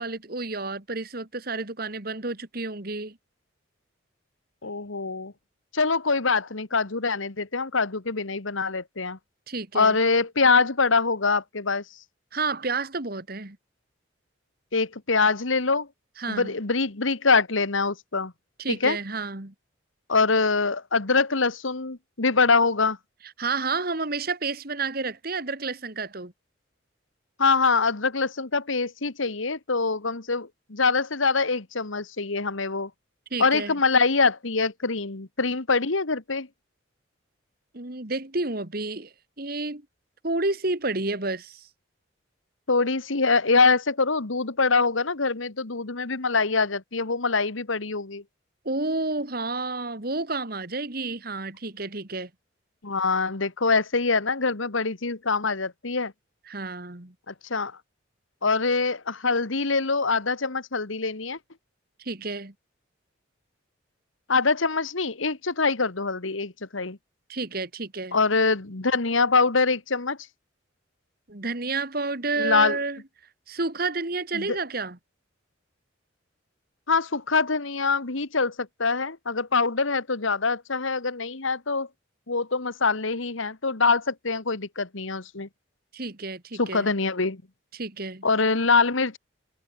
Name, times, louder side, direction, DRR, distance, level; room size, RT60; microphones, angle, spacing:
voice 1, 0.0-3.2 9.5-10.0 12.3-13.6 16.2-16.5 18.6-19.5 23.4-26.3 33.3-33.7 37.7-39.8 40.2-41.7 48.7-52.3 56.5-57.1 62.0-62.5 67.3-68.2 71.3-73.0 73.5-75.0 85.9-86.9 87.7-88.3, right 3 dB, 50° right, 2.0 m, -30 dB
voice 2, 4.6-5.3 5.7-9.2 9.7-11.8 14.7-15.9 16.3-18.3 18.7-19.0 20.1-23.0 27.4-32.9 33.4-36.5 42.7-48.2 52.8-56.1 57.3-57.7 58.4-61.4 64.3-67.0 68.1-70.2 72.4-72.8 74.3-74.6 76.9-81.9 82.3-85.5 86.6-87.4 88.2-89.2, left 4 dB, 80° left, 1.6 m, -24 dB
head